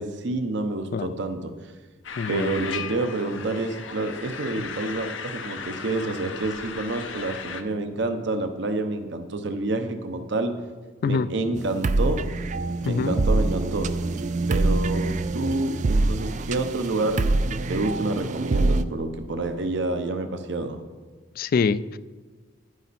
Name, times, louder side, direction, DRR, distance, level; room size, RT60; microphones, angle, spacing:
voice 1, 0.0-1.5 2.3-10.5 11.0-12.2 12.8-13.9 14.5-20.8, right 2 dB, 65° right, 7 dB, 0.8 m, -28 dB
sound 1, 2.0-7.6, left 6 dB, 85° left, 0.8 m, -36 dB
voice 2, 2.2-2.5 11.0-11.3 12.9-13.1 21.4-22.0, left 5 dB, 50° left, 16 dB, 0.3 m, -24 dB
sound 2, 11.6-18.8, right 2 dB, 40° right, 0.4 m, -25 dB
10.0 x 9.9 x 4.2 m, 1.4 s
head